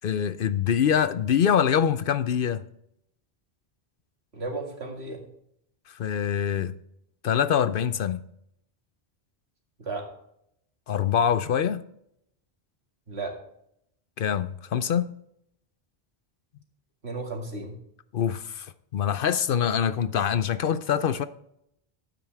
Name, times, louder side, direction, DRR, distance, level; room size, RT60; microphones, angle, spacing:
voice 1, 0.0-2.6 5.9-6.7 7.2-8.2 10.9-11.8 14.2-15.1 18.1-21.3, left 8 dB, 65° left, 0.7 m, -24 dB
voice 2, 4.3-5.2 9.8-10.0 13.1-13.3 17.0-17.8, right 3 dB, 80° right, 2.4 m, -34 dB
12.5 x 9.0 x 3.4 m
omnidirectional pair, 1.1 m